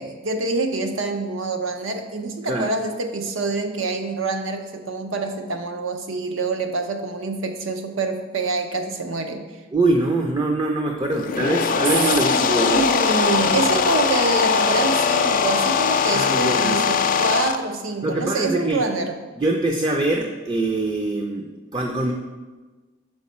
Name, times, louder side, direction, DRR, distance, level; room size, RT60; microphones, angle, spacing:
voice 1, 0.0-9.4 11.4-11.8 12.3-19.2, right 3 dB, 85° right, 6 dB, 0.7 m, -26 dB
voice 2, 9.7-12.9 16.1-16.8 18.0-18.9 19.4-22.1, right 2 dB, 20° right, 2 dB, 0.4 m, -23 dB
sound 1, 11.1-17.6, left 6 dB, 45° left, 0.4 m, -20 dB
6.6 x 4.7 x 4.2 m, 1.3 s
head